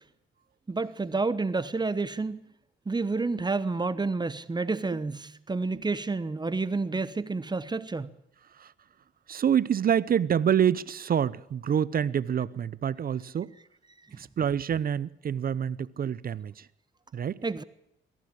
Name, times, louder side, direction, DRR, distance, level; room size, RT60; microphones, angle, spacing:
voice 1, 0.7-2.4 2.9-8.1 17.4-17.6, right 3 dB, 20° right, 1.1 m, -29 dB
voice 2, 9.3-13.5 14.1-16.7 17.1-17.4, right 8 dB, 45° right, 0.8 m, -27 dB
24.0 x 15.0 x 8.8 m
cardioid pair, 90°, 20 cm